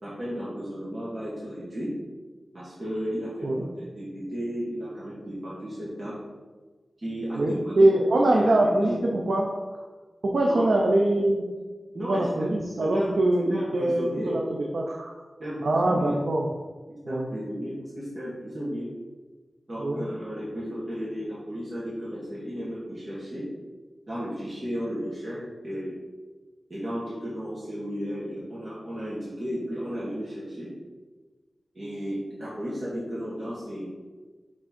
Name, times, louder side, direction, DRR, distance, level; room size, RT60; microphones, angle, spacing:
voice 1, 0.0-1.9 2.5-6.2 7.0-7.9 8.3-9.0 10.5-10.7 11.9-12.5 12.8-14.3 15.4-16.1 17.1-18.9 19.7-23.4 24.1-26.0 26.7-30.7 31.7-33.9, equal, 45° right, -10 dB, 1.9 m, -34 dB
voice 2, 7.4-9.8 10.2-11.5 12.1-14.4 14.7-15.2 15.6-16.5 17.1-17.3 19.8-20.1, right 1 dB, 75° right, -1 dB, 0.7 m, -23 dB
6.0 x 3.7 x 4.3 m, 1.3 s
wide cardioid pair, 80°, 0 cm